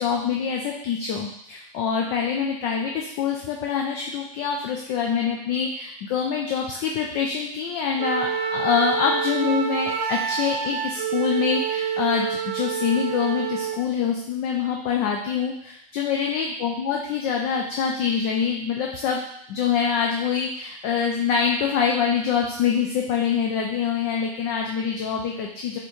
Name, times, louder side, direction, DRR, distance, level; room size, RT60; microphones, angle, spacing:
voice 1, 0.0-19.2 19.5-25.8, left 6 dB, 30° left, 0 dB, 0.3 m, -25 dB
Wind instrument woodwind instrument, 8.0-13.8, right 7 dB, 80° right, 0.8 m, -27 dB
4.4 x 3.4 x 3.1 m, 0.71 s
supercardioid pair, 160°, 20 cm